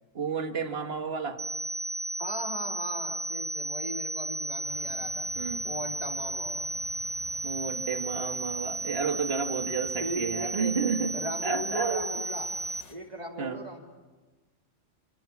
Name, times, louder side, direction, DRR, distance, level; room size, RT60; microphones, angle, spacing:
voice 1, 0.1-1.4 5.4-5.6 7.4-11.1 11.4-12.2 13.4-13.6, right 5 dB, 55° right, 6 dB, 1.8 m, -31 dB
sound 1, 1.4-12.8, right 2 dB, 10° right, 0.7 m, -34 dB
voice 2, 2.2-5.3 5.6-6.7 10.0-10.7 11.1-12.5 12.9-13.8, right 1 dB, 35° right, 0 dB, 2.7 m, -37 dB
sound 2, 4.6-12.9, left 2 dB, 65° left, 3.2 m, -51 dB
28.0 x 26.5 x 7.2 m, 1.3 s
omnidirectional pair, 1.3 m